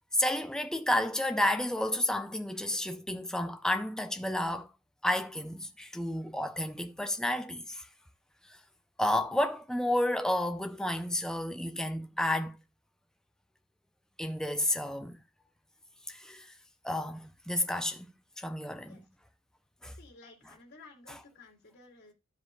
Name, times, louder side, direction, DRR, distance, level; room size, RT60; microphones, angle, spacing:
voice 1, 0.1-4.7 5.0-7.9 8.5-8.6 9.0-12.6 14.2-15.2 16.1-16.5 16.8-18.1 18.4-19.0 19.8-19.9 21.1-21.2, left 1 dB, 5° left, 0.5 m, -31 dB
voice 2, 20.0-22.1, left 3 dB, 50° left, 2.6 m, -54 dB
14.0 x 5.0 x 2.3 m
head